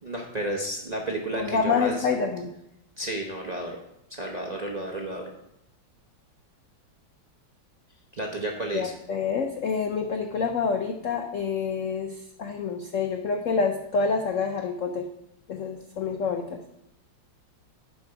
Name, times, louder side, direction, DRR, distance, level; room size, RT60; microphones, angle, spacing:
voice 1, 0.0-2.1 3.0-3.8 4.1-5.3 8.2-8.9, right 1 dB, 40° right, 0 dB, 0.6 m, -32 dB
voice 2, 1.4-2.5 8.7-15.1 15.5-16.6, left 5 dB, 80° left, 4 dB, 0.7 m, -27 dB
10.5 x 5.3 x 4.7 m, 0.81 s
omnidirectional pair, 2.1 m